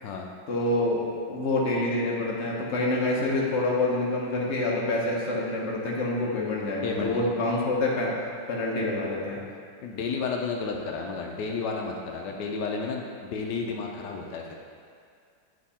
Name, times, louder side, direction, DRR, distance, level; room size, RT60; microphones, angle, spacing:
voice 1, 0.5-8.1 8.5-9.4, left 2 dB, 45° left, -4 dB, 1.1 m, -27 dB
voice 2, 6.8-7.3 9.8-14.6, left 4 dB, 75° left, 1 dB, 1.2 m, -32 dB
7.5 x 3.6 x 4.2 m, 2.2 s
omnidirectional pair, 2.0 m